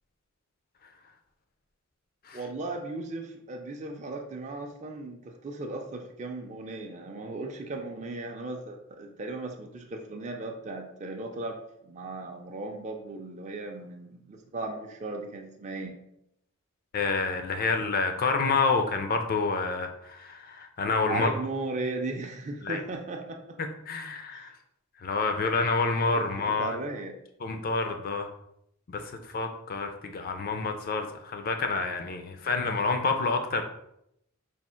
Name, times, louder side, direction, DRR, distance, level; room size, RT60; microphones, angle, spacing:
voice 1, 2.3-11.6 11.8-16.0 21.1-23.6 24.3-24.4 26.1-27.2, right 2 dB, 35° right, 2 dB, 0.4 m, -36 dB
voice 2, 16.9-21.3 22.6-22.8 23.6-24.5 25.0-26.8 27.4-28.3 28.9-33.6, left 4 dB, 40° left, 6 dB, 0.4 m, -28 dB
3.5 x 2.4 x 4.3 m, 0.77 s
head